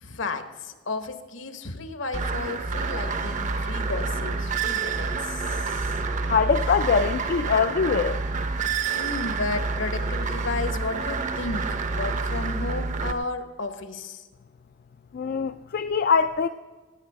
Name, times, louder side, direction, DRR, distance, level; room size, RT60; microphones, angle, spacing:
voice 1, 0.0-5.8 8.9-14.2, left 3 dB, 70° left, 9 dB, 1.1 m, -33 dB
sound 1, 2.1-13.1, right 4 dB, 35° right, 0.6 m, -28 dB
voice 2, 6.3-8.2 15.1-16.5, left 5 dB, 45° left, 9 dB, 0.3 m, -23 dB
16.5 x 8.7 x 4.7 m, 1.3 s
head